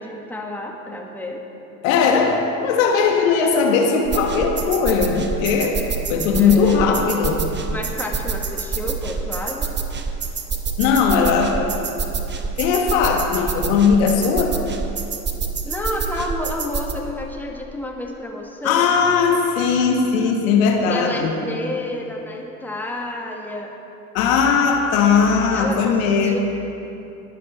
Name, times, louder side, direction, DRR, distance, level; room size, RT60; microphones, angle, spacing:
voice 1, 0.0-1.4 6.4-7.0 7.7-9.8 15.6-18.9 20.9-23.7 25.5-26.4, left 1 dB, 5° left, 0 dB, 1.7 m, -30 dB
voice 2, 1.8-5.8 6.1-7.5 10.8-11.7 12.6-14.6 18.6-21.4 24.1-26.4, left 5 dB, 65° left, 2 dB, 1.5 m, -18 dB
sound 1, 4.1-16.9, right 5 dB, 25° right, 1.1 m, -27 dB
21.0 x 7.5 x 4.2 m, 2.8 s
hypercardioid pair, 75°, 45 cm